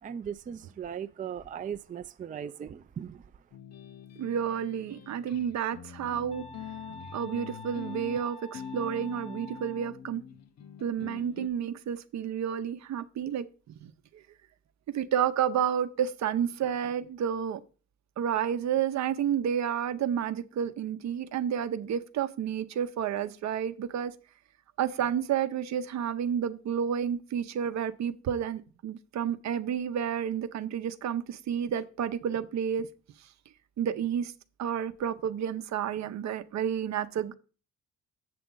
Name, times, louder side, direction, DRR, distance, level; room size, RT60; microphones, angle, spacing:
voice 1, 0.0-3.3, right 8 dB, 30° right, 0.4 m, -38 dB
sound 1, 3.5-11.5, left 9 dB, 60° left, 0.7 m, -44 dB
voice 2, 4.2-6.5 7.1-10.2 10.8-14.2 14.9-17.6 18.2-24.1 24.8-32.9 33.8-34.3 34.6-37.3, right 8 dB, 65° right, 0.7 m, -30 dB
sound 2, 6.3-9.9, equal, 20° left, 0.7 m, -47 dB
7.6 x 6.9 x 3.8 m
cardioid pair, 90°, 30 cm